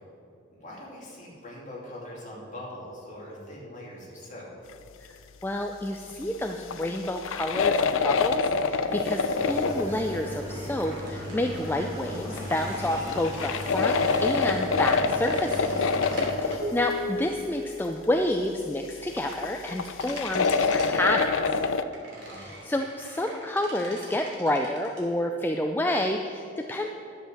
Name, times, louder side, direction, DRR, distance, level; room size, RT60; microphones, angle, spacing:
voice 1, 0.5-4.5 22.1-22.5, left 1 dB, 35° left, -4 dB, 2.7 m, -42 dB
voice 2, 5.4-15.7 16.4-21.6 22.3-26.9, left 1 dB, 10° left, 3 dB, 0.3 m, -29 dB
sound 1, 6.1-6.2 6.5-10.1 12.3-17.0 19.2-21.8, left 4 dB, 80° left, 0.5 m, -26 dB
sound 2, 9.3-16.3, equal, 20° right, 2.4 m, -36 dB
sound 3, 10.8-18.6 19.8-20.9 21.9-25.0, left 1 dB, 60° right, 3.1 m, -40 dB
10.5 x 8.0 x 6.5 m, 2.7 s
head